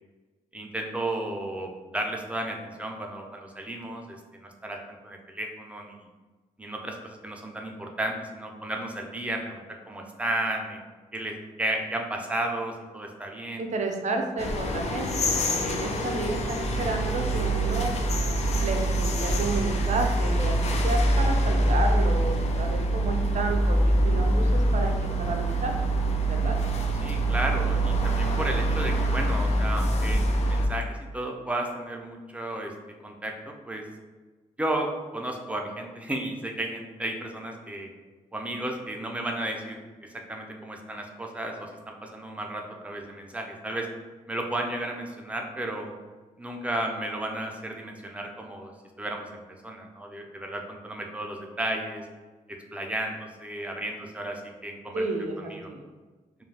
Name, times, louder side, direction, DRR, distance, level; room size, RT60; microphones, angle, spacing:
voice 1, 0.5-6.0 6.6-10.8 11.1-13.6 27.0-32.7 33.0-33.8 34.6-37.9 38.3-39.8 40.3-43.9 44.3-45.9 46.4-48.7 49.0-52.0 52.7-55.0 55.4-55.7, right 1 dB, 10° right, 1 dB, 0.6 m, -33 dB
voice 2, 13.6-17.9 18.6-25.7 26.3-26.6 54.9-55.9, right 2 dB, 55° right, 3 dB, 0.5 m, -31 dB
sound 1, 14.4-30.7, right 1 dB, 50° left, 0.5 m, -25 dB
2.3 x 2.2 x 3.3 m, 1.3 s
supercardioid pair, 50°, 14 cm